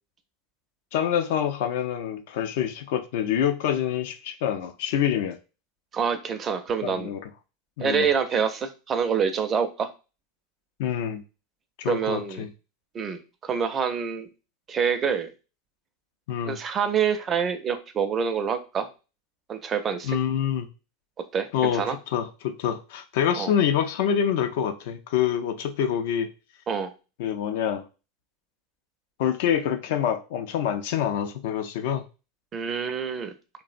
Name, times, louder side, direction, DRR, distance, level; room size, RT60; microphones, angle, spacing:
voice 1, 0.9-5.4 6.8-7.3 7.8-8.1 10.8-11.2 11.8-12.5 16.3-16.6 20.0-20.7 21.5-26.3 27.2-27.9 29.2-32.0, left 9 dB, 65° left, 8 dB, 0.4 m, -26 dB
voice 2, 5.9-7.1 7.8-9.9 11.9-12.5 12.9-14.3 14.7-15.3 16.5-18.9 19.5-20.2 21.3-22.0 23.4-23.5 26.7-26.9 32.5-33.3, right 6 dB, 30° right, 8 dB, 0.4 m, -26 dB
2.6 x 2.0 x 2.4 m, 0.31 s
hypercardioid pair, 95°, 0 cm